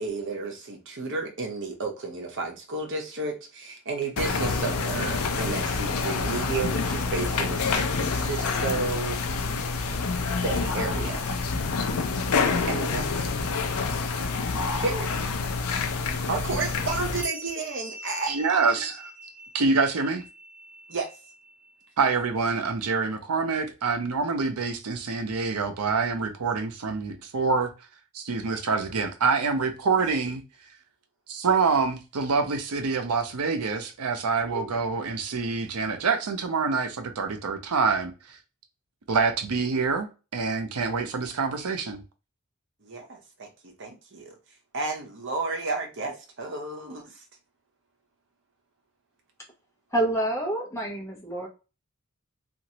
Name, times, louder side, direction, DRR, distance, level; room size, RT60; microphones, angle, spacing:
voice 1, 0.0-9.2 10.4-11.4 12.7-13.5 14.8-15.3 16.3-19.0 20.9-21.1 34.5-34.8 42.8-44.4 44.7-47.2, right 3 dB, 55° right, 0.8 m, -32 dB
sound 1, 4.2-17.2, left 4 dB, 75° left, 0.4 m, -27 dB
sound 2, 17.2-22.1, right 1 dB, 5° right, 0.3 m, -43 dB
voice 2, 18.3-19.0 19.5-20.2 22.0-27.7 28.1-30.4 31.3-38.1 39.1-42.0, right 4 dB, 85° right, 0.6 m, -26 dB
voice 3, 49.9-51.5, right 1 dB, 15° left, 0.8 m, -27 dB
3.0 x 2.5 x 2.8 m
head